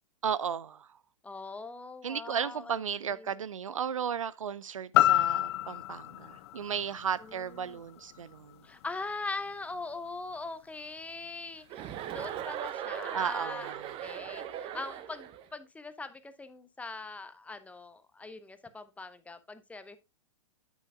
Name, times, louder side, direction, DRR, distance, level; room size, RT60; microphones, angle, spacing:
voice 1, 0.2-0.9 2.0-8.6 13.1-13.9, right 8 dB, 85° right, 0.5 m, -34 dB
voice 2, 1.2-2.8 3.2-3.4 7.2-7.8 8.6-20.0, left 3 dB, 10° left, 0.8 m, -41 dB
sound 1, 4.9-9.0 9.5-9.6, left 15 dB, 55° left, 0.4 m, -29 dB
Chuckle chortle, 11.7-15.4, right 10 dB, 35° right, 0.9 m, -39 dB
9.2 x 7.4 x 2.2 m
hypercardioid pair, 110°, 16 cm